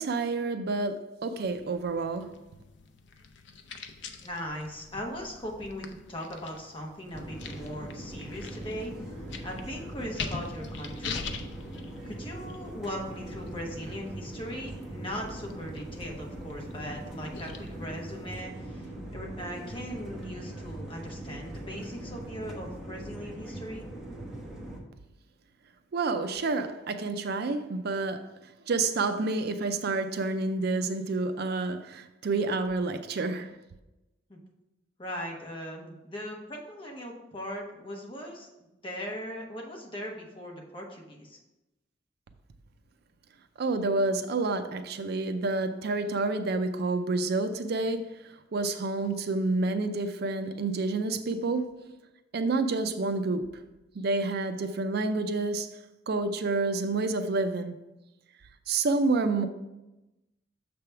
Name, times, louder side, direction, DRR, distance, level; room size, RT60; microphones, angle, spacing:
voice 1, 0.0-2.3 25.9-28.3 28.7-33.5 43.6-48.0 48.5-51.7 52.3-53.6 54.0-55.7 56.1-57.7 58.7-59.5, right 3 dB, 60° right, 0.4 m, -29 dB
sound 1, 1.4-18.4, left 5 dB, 70° left, 0.6 m, -44 dB
voice 2, 4.2-8.9 9.4-11.2 12.0-23.9 34.3-34.4 35.0-38.5 38.8-41.4, equal, 30° left, 1.2 m, -39 dB
sound 2, 7.1-24.8, right 1 dB, 5° right, 1.0 m, -41 dB
6.7 x 3.4 x 5.7 m
head